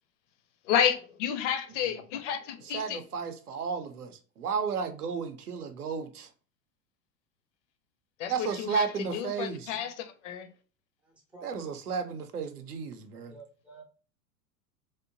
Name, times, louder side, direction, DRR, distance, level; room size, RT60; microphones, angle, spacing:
voice 1, 0.7-3.0 8.2-10.5, left 9 dB, 55° left, 0.5 m, -31 dB
voice 2, 1.7-2.2 11.0-11.5 13.2-13.8, right 4 dB, 5° right, 0.3 m, -52 dB
voice 3, 2.6-6.3 8.3-9.8 11.4-13.3, right 6 dB, 85° right, 0.6 m, -33 dB
2.7 x 2.1 x 2.5 m
figure-of-eight pair, 90°, 45 cm